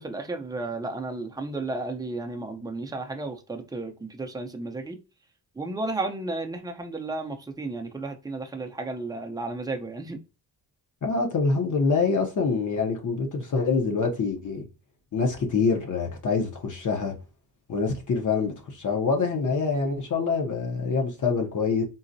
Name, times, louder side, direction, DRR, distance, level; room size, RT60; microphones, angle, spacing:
voice 1, 0.0-5.0 5.6-10.2, right 2 dB, 10° right, 0.4 m, -33 dB
voice 2, 11.0-14.6 15.1-17.1 17.7-21.9, left 4 dB, 50° left, 0.7 m, -25 dB
3.9 x 2.1 x 2.6 m
wide cardioid pair, 115°, 41 cm